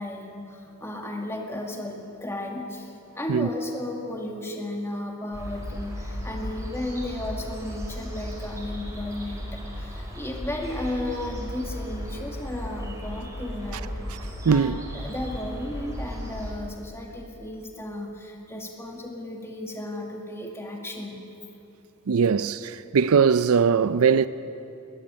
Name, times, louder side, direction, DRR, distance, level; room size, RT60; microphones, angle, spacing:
voice 1, 0.0-13.9 14.4-21.2, left 1 dB, 10° left, 2.1 m, -34 dB
sound 1, 5.3-16.5, equal, 15° right, 4.4 m, -35 dB
voice 2, 14.4-14.8 22.1-24.3, right 6 dB, 85° right, 0.5 m, -20 dB
20.0 x 13.5 x 10.0 m
head